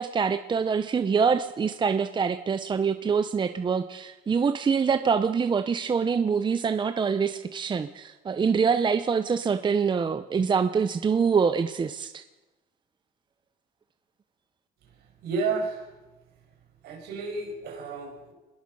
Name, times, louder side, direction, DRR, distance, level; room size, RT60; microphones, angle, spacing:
voice 1, 0.0-12.2, right 6 dB, 25° right, 10 dB, 0.8 m, -25 dB
voice 2, 15.2-15.9 16.8-18.3, right 4 dB, 75° right, 2 dB, 5.9 m, -31 dB
24.5 x 20.5 x 5.5 m, 1.1 s
cardioid pair, 110°, 17 cm